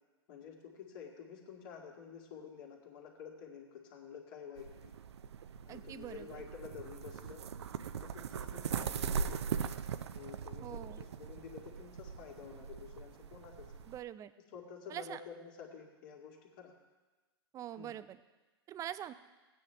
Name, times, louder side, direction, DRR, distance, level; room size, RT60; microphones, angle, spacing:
voice 1, 0.3-4.9 5.7-7.4 8.0-9.8 10.1-13.8 14.5-16.7 17.7-17.9, left 7 dB, 55° left, 0 dB, 2.2 m, -50 dB
sound 1, 4.6-14.0, right 7 dB, 80° right, 0.5 m, -40 dB
voice 2, 5.7-6.4 10.6-11.0 13.9-14.3 14.9-15.2 17.5-18.2 18.7-19.1, right 11 dB, 25° right, 14 dB, 0.5 m, -44 dB
16.0 x 9.1 x 3.4 m, 1.2 s
hypercardioid pair, 115°, 14 cm